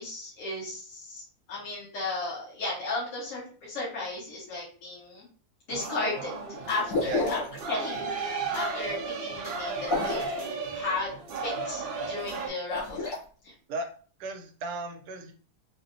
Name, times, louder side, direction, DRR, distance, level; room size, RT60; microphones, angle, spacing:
voice 1, 0.0-5.2 5.7-6.3 6.7-7.4 7.7-11.1 11.4-13.1 13.4-13.5, left 2 dB, 55° left, -7 dB, 1.5 m, -35 dB
sound 1, 5.7-12.5, right 4 dB, 65° right, 0.6 m, -34 dB
Bubbles Short Bassy Bursts, 6.9-7.6 9.8-10.4 12.6-13.2, left 2 dB, 80° left, 1.6 m, -29 dB
voice 2, 7.0-7.5 13.7-13.9 14.2-15.3, right 3 dB, 85° right, 6 dB, 1.2 m, -36 dB
4.0 x 2.0 x 2.7 m, 0.40 s
omnidirectional pair, 1.7 m